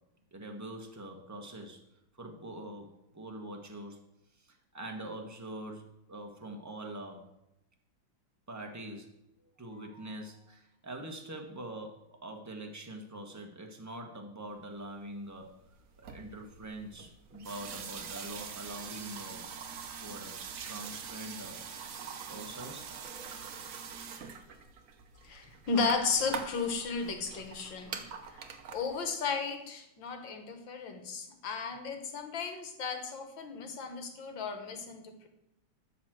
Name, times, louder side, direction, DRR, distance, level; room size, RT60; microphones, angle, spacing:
voice 1, 0.3-1.8 2.1-4.0 4.4-7.3 8.5-9.1 9.6-15.6 16.0-19.4 20.0-21.6 22.3-22.9, right 1 dB, 10° right, 2 dB, 1.0 m, -44 dB
sound 1, 15.0-15.1 15.3-29.0, right 6 dB, 55° right, 1.0 m, -44 dB
voice 2, 25.2-28.0 28.3-35.3, left 5 dB, 65° left, 6 dB, 2.0 m, -34 dB
12.0 x 4.3 x 7.6 m, 0.85 s
omnidirectional pair, 2.3 m